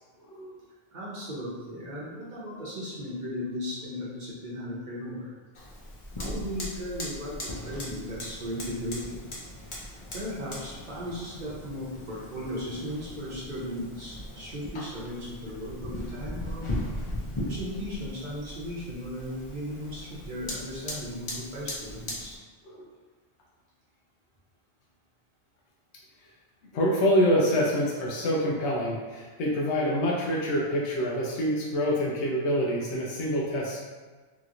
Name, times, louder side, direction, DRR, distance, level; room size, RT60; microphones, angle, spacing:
voice 1, 0.9-5.3 6.2-9.3 9.7-16.8 17.5-22.4, equal, 50° right, -7 dB, 0.9 m, -36 dB
Fire, 5.5-22.4, left 1 dB, 40° left, 0.4 m, -38 dB
voice 2, 26.7-33.8, equal, 90° left, -3 dB, 0.9 m, -26 dB
3.0 x 2.9 x 2.5 m, 1.4 s
omnidirectional pair, 1.1 m